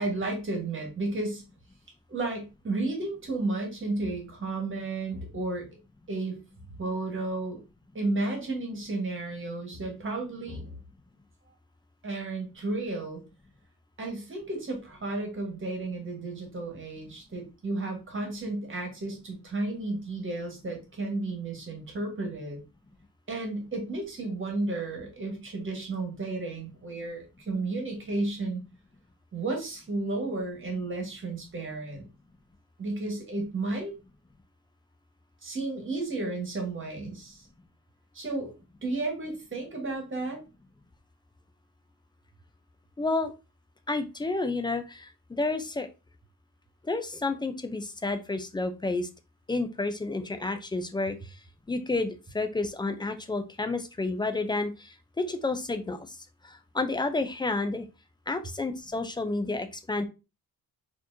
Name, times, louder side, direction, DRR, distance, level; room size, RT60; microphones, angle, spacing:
voice 1, 0.0-1.4 2.1-5.7 6.1-6.4 6.8-7.6 7.9-10.8 12.0-13.2 14.0-22.6 23.3-28.6 29.3-32.1 32.8-33.9 35.4-37.5 38.1-38.5 38.8-40.4, right 2 dB, 35° right, 1 dB, 1.5 m, -33 dB
voice 2, 43.0-43.3 43.9-45.9 46.9-49.1 49.5-51.2 51.7-56.0 56.4-57.9 58.3-60.0, left 3 dB, 15° left, 8 dB, 0.3 m, -30 dB
4.3 x 3.0 x 2.7 m, 0.28 s
wide cardioid pair, 140°, 37 cm